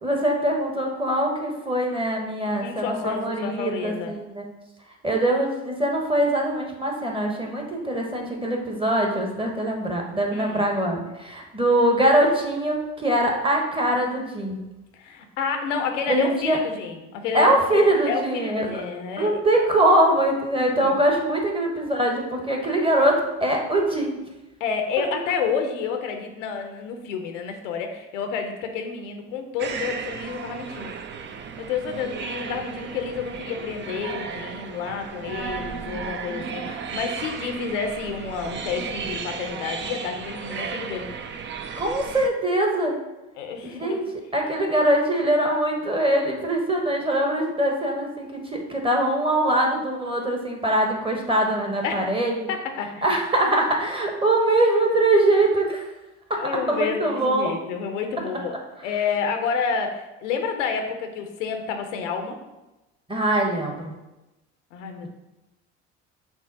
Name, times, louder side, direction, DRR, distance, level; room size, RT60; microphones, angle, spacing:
voice 1, 0.0-4.5 5.0-14.6 16.1-16.6 17.3-18.8 19.2-24.2 41.8-42.9 43.6-44.0 44.3-52.5 53.0-55.9 56.3-56.4 56.7-57.5 63.1-63.9, right 1 dB, 15° right, 1 dB, 1.1 m, -22 dB
voice 2, 2.6-4.1 10.3-10.7 14.9-19.4 20.6-20.9 24.6-31.0 31.6-41.1 43.4-44.0 51.8-52.2 52.5-53.1 56.4-58.5 58.8-62.4 64.7-65.1, left 6 dB, 85° left, 5 dB, 0.7 m, -29 dB
sound 1, 29.6-42.3, right 6 dB, 30° right, 0.4 m, -34 dB
6.0 x 2.0 x 4.0 m, 1.0 s
hypercardioid pair, 65°, 36 cm